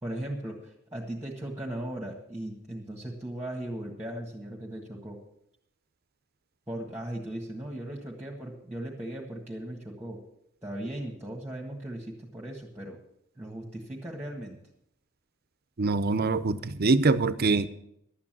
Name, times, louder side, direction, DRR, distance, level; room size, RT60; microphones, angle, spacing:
voice 1, 0.0-5.2 6.7-10.2 10.6-13.0 13.4-14.6, right 1 dB, 10° right, 0 dB, 1.6 m, -37 dB
voice 2, 15.8-17.7, right 3 dB, 45° right, 14 dB, 0.6 m, -24 dB
11.5 x 8.6 x 7.5 m, 0.77 s
head